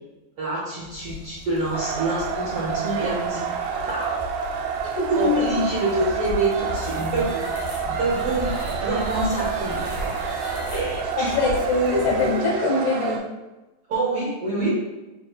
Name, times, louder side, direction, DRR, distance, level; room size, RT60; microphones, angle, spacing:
voice 1, 0.4-3.4 3.9-4.2 5.1-7.4 7.8-8.5 8.8-10.1 10.7-11.3 13.9-14.7, right 2 dB, 70° right, -7 dB, 1.4 m, -26 dB
Bicycle, 0.8-12.5, left 7 dB, 80° left, 2.3 m, -38 dB
sound 1, 1.7-13.2, right 7 dB, 85° right, 1.6 m, -29 dB
voice 2, 5.0-5.5 10.7-10.8 11.2-13.2, left 2 dB, 65° left, -2 dB, 2.1 m, -23 dB
sound 2, 6.5-12.4, right 2 dB, 50° right, 1.6 m, -36 dB
6.6 x 3.2 x 2.4 m, 1.1 s
omnidirectional pair, 3.9 m